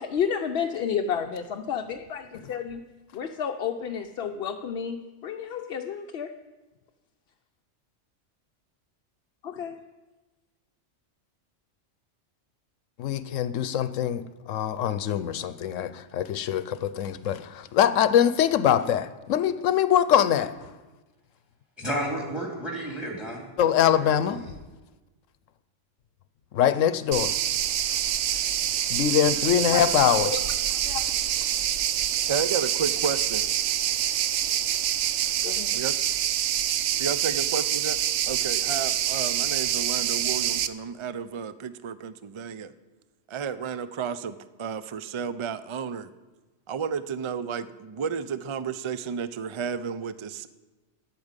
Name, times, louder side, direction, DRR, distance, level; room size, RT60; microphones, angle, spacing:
voice 1, 0.0-2.8 3.1-5.0 5.2-6.3 9.4-9.8 29.7-29.9 30.2-30.4 30.8-31.0 35.4-35.7, left 7 dB, 60° left, 4 dB, 0.8 m, -31 dB
voice 2, 13.0-20.7 23.6-24.4 26.5-27.3 28.9-30.3, left 9 dB, 85° left, 13 dB, 1.0 m, -23 dB
voice 3, 21.8-23.4 23.9-24.5, right 1 dB, ahead, 0 dB, 2.6 m, -32 dB
sound 1, 27.1-40.7, right 11 dB, 75° right, 0.9 m, -26 dB
voice 4, 32.3-33.5 35.7-35.9 37.0-38.0 38.3-42.7 43.3-46.1 46.7-50.5, right 6 dB, 55° right, 14 dB, 0.3 m, -32 dB
10.5 x 8.7 x 8.1 m, 1.2 s
omnidirectional pair, 1.3 m